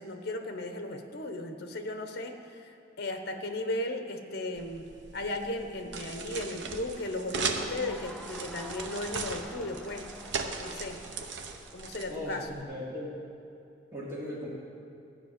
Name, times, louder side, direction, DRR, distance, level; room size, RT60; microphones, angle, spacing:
voice 1, 0.0-10.1 10.6-11.0 11.7-12.5, left 1 dB, 55° left, 6 dB, 1.0 m, -36 dB
sound 1, 4.6-12.6, right 4 dB, 65° right, 0.8 m, -38 dB
Crowd, 7.3-12.1, left 1 dB, 5° left, 0.4 m, -49 dB
voice 2, 12.1-13.2 13.9-14.5, left 1 dB, 15° right, -8 dB, 2.8 m, -38 dB
13.5 x 5.8 x 8.9 m, 2.7 s
head